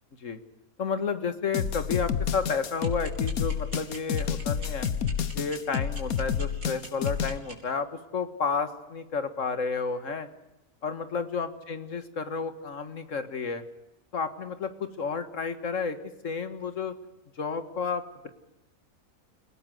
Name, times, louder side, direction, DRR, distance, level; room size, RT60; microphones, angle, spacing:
voice 1, 0.8-4.9 5.3-7.9 8.1-10.3 10.8-13.6 14.1-16.0 16.2-16.9 17.4-18.3, left 5 dB, 60° left, 10 dB, 2.0 m, -31 dB
sound 1, 1.5-7.4, left 7 dB, 75° left, 1.6 m, -29 dB
sound 2, 2.8-7.5, right 3 dB, 70° right, 4.1 m, -42 dB
29.0 x 17.5 x 7.8 m, 0.92 s
omnidirectional pair, 1.5 m